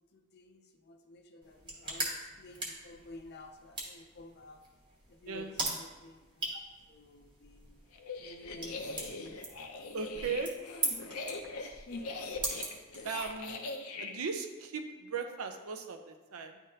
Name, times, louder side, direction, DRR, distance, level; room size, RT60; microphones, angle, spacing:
voice 1, 0.0-4.6 5.1-6.6 6.9-7.7 8.2-9.4 10.6-11.2 11.9-12.7, left 2 dB, 50° left, 6 dB, 0.5 m, -51 dB
sound 1, 1.4-13.5, right 2 dB, 20° right, 1.2 m, -41 dB
sound 2, 7.9-14.1, left 3 dB, 85° left, 0.6 m, -42 dB
voice 2, 9.9-10.5 13.0-13.7 14.0-16.6, right 5 dB, 80° right, 5 dB, 0.7 m, -37 dB
10.0 x 3.5 x 2.8 m, 1.2 s
head